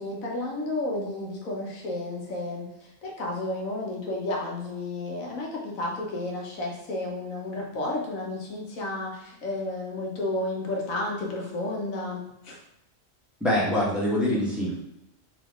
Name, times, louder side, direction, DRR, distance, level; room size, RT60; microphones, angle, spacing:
voice 1, 0.0-12.6, left 2 dB, 85° left, -1 dB, 1.3 m, -32 dB
voice 2, 13.4-14.9, left 1 dB, ahead, -7 dB, 1.1 m, -25 dB
3.6 x 2.9 x 3.5 m, 0.85 s
omnidirectional pair, 1.4 m